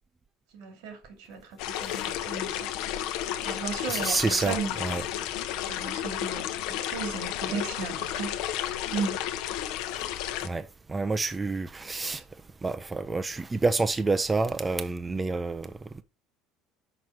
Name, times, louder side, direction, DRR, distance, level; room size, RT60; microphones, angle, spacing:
voice 1, 0.5-2.7 3.4-4.8 5.7-8.4 8.9-9.2, right 5 dB, 80° right, 2.7 m, -35 dB
sound 1, 1.6-10.5, left 11 dB, 70° left, 0.8 m, -32 dB
voice 2, 3.9-5.0 10.4-12.2 12.6-16.0, right 3 dB, 10° right, 0.4 m, -29 dB
5.9 x 5.5 x 4.6 m
cardioid pair, 165°, 0 cm